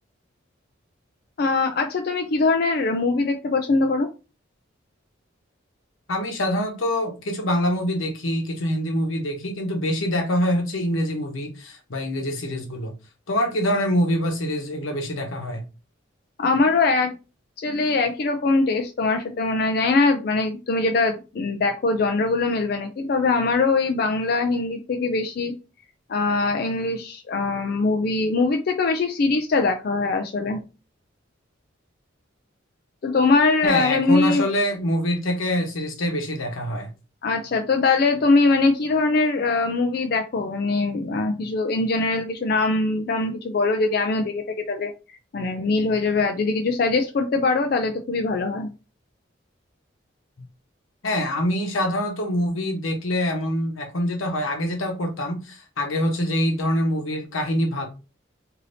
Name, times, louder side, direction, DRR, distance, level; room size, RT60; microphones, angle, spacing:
voice 1, 1.4-4.1 16.4-17.2 17.6-25.5 26.1-30.6 33.0-34.4 37.2-48.7, left 3 dB, 50° left, 0.3 m, -22 dB
voice 2, 6.1-12.9 13.3-15.6 33.6-36.9 51.0-57.9, equal, 90° left, 0.9 m, -25 dB
3.2 x 2.7 x 2.6 m
head